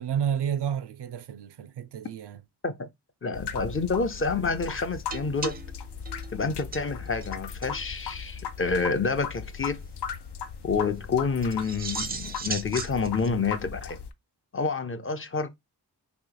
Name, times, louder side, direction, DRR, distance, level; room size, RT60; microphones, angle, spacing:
voice 1, 0.0-2.4, right 8 dB, 75° right, 0.5 m, -30 dB
voice 2, 3.2-5.6 6.3-9.8 10.6-14.0 14.5-15.5, left 4 dB, 30° left, 0.5 m, -28 dB
sound 1, 3.3-14.1, left 7 dB, 80° left, 0.5 m, -38 dB
sound 2, 5.1-7.4 7.6-7.8 8.1-8.2 8.4-8.5 11.4-13.3, right 4 dB, 25° right, 0.4 m, -37 dB
3.0 x 2.9 x 3.7 m
wide cardioid pair, 80°, 40 cm